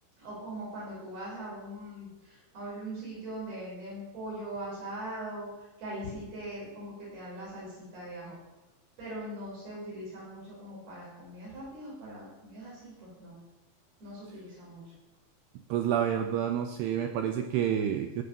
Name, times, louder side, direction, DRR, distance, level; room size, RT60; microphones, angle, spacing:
voice 1, 0.2-8.4 9.0-13.4 14.0-14.8, right 1 dB, 50° right, -6 dB, 7.5 m, -41 dB
voice 2, 15.7-18.2, right 9 dB, 85° right, 6 dB, 2.3 m, -29 dB
16.5 x 7.7 x 7.0 m, 1.0 s
omnidirectional pair, 5.6 m